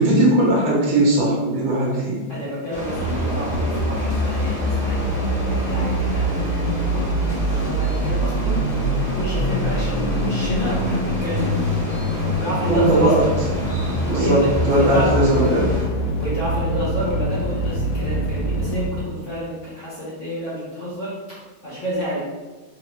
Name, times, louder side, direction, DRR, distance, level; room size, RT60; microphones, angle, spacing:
voice 1, 0.0-2.3 12.7-13.5 14.1-15.7, right 1 dB, 75° right, -4 dB, 1.7 m, -18 dB
voice 2, 2.3-7.1 7.5-8.6 9.0-11.6 12.1-13.3 14.0-15.1 16.2-22.3, equal, 55° left, -8 dB, 0.9 m, -30 dB
sound 1, 2.7-15.8, left 1 dB, 5° right, 1.0 m, -30 dB
sound 2, 2.9-18.9, equal, 80° left, 1.4 m, -24 dB
4.2 x 2.6 x 2.9 m, 1.3 s
omnidirectional pair, 2.2 m